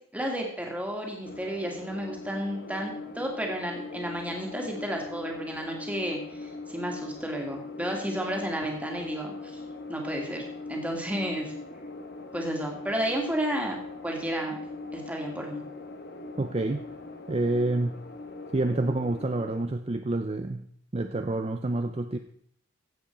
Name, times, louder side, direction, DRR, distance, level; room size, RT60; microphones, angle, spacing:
voice 1, 0.1-9.6 9.9-10.4 10.7-11.5 12.3-13.8 14.0-14.6 14.9-15.6, equal, 5° right, 1 dB, 2.1 m, -32 dB
sound 1, 1.2-19.7, left 3 dB, 50° left, 1.1 m, -41 dB
voice 2, 16.4-16.8 17.3-18.0 18.5-20.7 20.9-22.2, right 2 dB, 30° right, 7 dB, 0.5 m, -28 dB
15.5 x 7.8 x 4.5 m, 0.65 s
head